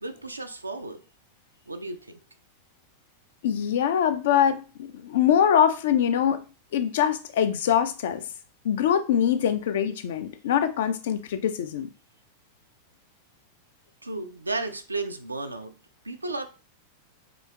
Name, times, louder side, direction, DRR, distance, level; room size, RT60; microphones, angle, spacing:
voice 1, 0.0-1.0 1.7-2.2 14.0-15.7 16.0-16.5, right 2 dB, 80° right, 0.4 m, -33 dB
voice 2, 3.4-6.4 6.7-8.2 8.6-11.9, left 9 dB, 55° left, 0.4 m, -23 dB
5.0 x 2.8 x 2.3 m
figure-of-eight pair, 90°, 0 cm